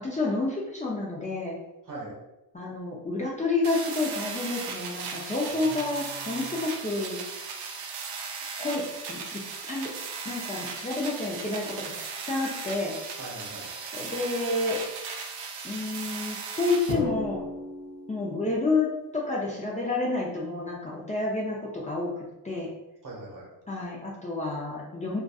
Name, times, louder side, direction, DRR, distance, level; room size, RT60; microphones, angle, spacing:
voice 1, 0.0-1.6 2.5-7.2 8.6-9.4 9.7-9.9 10.2-11.9 12.3-13.0 13.9-14.8 15.6-17.4 18.1-22.1 22.4-22.7 23.7-25.2, left 3 dB, 20° left, -4 dB, 0.4 m, -29 dB
sound 1, 3.6-16.9, right 5 dB, 75° right, 0.5 m, -37 dB
voice 2, 5.5-6.6 13.2-13.7 23.0-23.5, right 2 dB, 55° right, -2 dB, 0.9 m, -42 dB
Drum, 16.9-18.6, left 1 dB, 75° left, 0.8 m, -35 dB
2.5 x 2.3 x 2.3 m, 0.96 s
cardioid pair, 85°, 40 cm